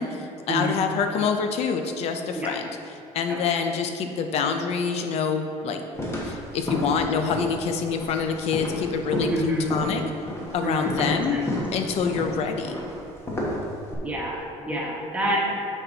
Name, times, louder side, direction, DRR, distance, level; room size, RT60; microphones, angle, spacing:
voice 1, 0.0-2.7 3.1-5.8 6.2-10.0 10.5-11.4 11.7-12.7, left 6 dB, 60° left, 6 dB, 0.7 m, -26 dB
sound 1, 6.0-13.9, left 1 dB, 20° left, 1.2 m, -32 dB
voice 2, 9.3-9.6 10.6-11.4 14.0-15.6, equal, 10° right, -4 dB, 1.4 m, -28 dB
9.0 x 4.3 x 4.0 m, 2.9 s
cardioid pair, 135°, 12 cm